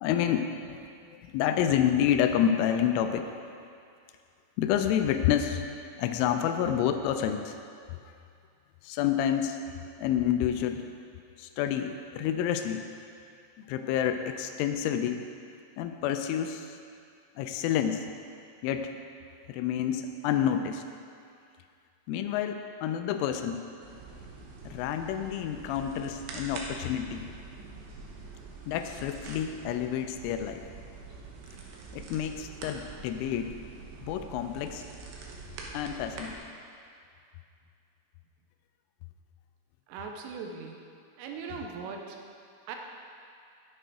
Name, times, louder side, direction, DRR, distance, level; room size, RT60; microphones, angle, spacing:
voice 1, 0.0-3.3 4.6-5.7 6.0-7.6 8.0-8.1 8.8-9.6 10.0-10.9 11.4-12.8 13.7-15.2 15.8-16.8 17.4-18.1 18.6-18.9 19.5-20.8 22.1-23.7 24.6-27.3 28.7-30.6 31.9-33.5 34.0-34.8 35.7-36.4, left 9 dB, 85° left, 7 dB, 2.9 m, -29 dB
sound 1, 23.8-36.4, right 4 dB, 70° right, 2.8 m, -45 dB
voice 2, 39.9-40.8 41.2-42.2 42.7-42.8, right 5 dB, 90° right, 2 dB, 3.3 m, -39 dB
9.9 x 9.0 x 5.0 m, 2.4 s
omnidirectional pair, 5.9 m